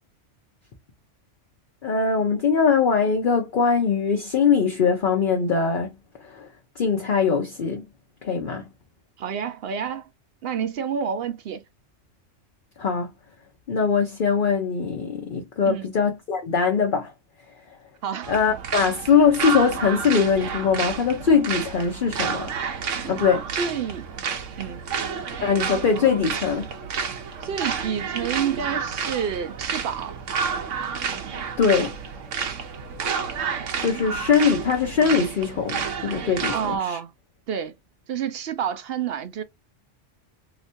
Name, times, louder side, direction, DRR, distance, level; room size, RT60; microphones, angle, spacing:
voice 1, 1.8-5.9 6.2-6.5 6.8-7.8 8.2-8.7 12.8-13.1 13.7-17.1 18.3-22.5 23.1-23.5 25.4-26.7 31.6-32.0 33.8-37.0, left 6 dB, 50° left, 0.8 m, -22 dB
voice 2, 9.2-10.1 10.4-11.6 15.6-15.9 18.0-18.3 23.6-24.0 24.6-24.8 27.4-30.2 36.5-37.1 37.5-37.7 38.1-39.4, right 7 dB, 65° right, 0.7 m, -29 dB
sound 1, 18.2-36.8, right 6 dB, 80° right, 1.1 m, -30 dB
3.2 x 3.0 x 2.6 m
omnidirectional pair, 1.3 m